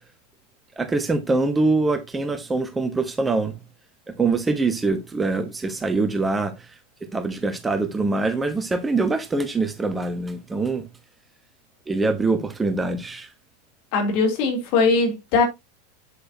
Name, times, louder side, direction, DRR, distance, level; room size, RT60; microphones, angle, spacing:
voice 1, 0.8-3.5 4.1-6.7 7.1-10.9 11.9-13.3, right 3 dB, 15° right, 1.0 m, -24 dB
voice 2, 13.9-15.4, left 4 dB, 45° left, 3.1 m, -20 dB
8.1 x 7.8 x 2.8 m
figure-of-eight pair, 85°, 0 cm